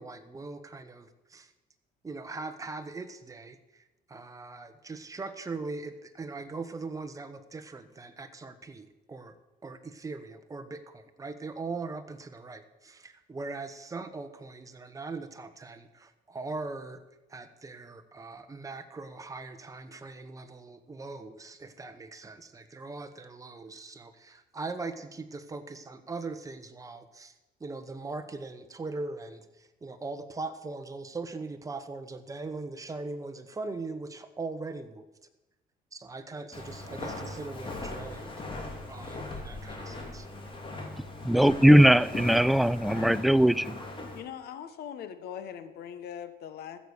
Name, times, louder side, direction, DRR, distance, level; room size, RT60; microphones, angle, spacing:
voice 1, 0.0-1.5 2.0-9.3 9.6-17.0 17.3-27.3 27.6-35.1 35.9-38.3 38.9-40.3, right 3 dB, 20° right, 1.2 m, -40 dB
Walk footsteps, 36.5-44.2, left 2 dB, 30° left, 2.7 m, -39 dB
voice 2, 41.2-43.8, equal, ahead, 0.3 m, -20 dB
voice 3, 44.1-46.8, left 9 dB, 70° left, 1.2 m, -41 dB
15.0 x 6.9 x 6.4 m
cardioid pair, 110°, 17 cm